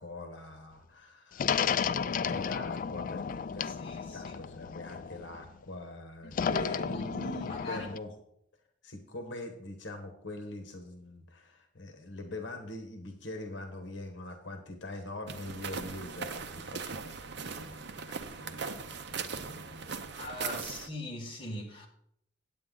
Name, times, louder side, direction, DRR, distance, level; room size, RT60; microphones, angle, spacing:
voice 1, 0.0-8.1 8.8-20.6, left 1 dB, 80° left, 1.1 m, -43 dB
sound 1, 1.4-5.5 6.3-8.0, left 6 dB, 45° left, 0.3 m, -33 dB
voice 2, 3.7-4.4 6.2-6.8 7.5-7.9 20.2-21.9, left 1 dB, 30° left, 1.8 m, -41 dB
sound 2, 15.3-20.9, right 5 dB, 65° right, 0.7 m, -39 dB
8.8 x 8.6 x 3.8 m
head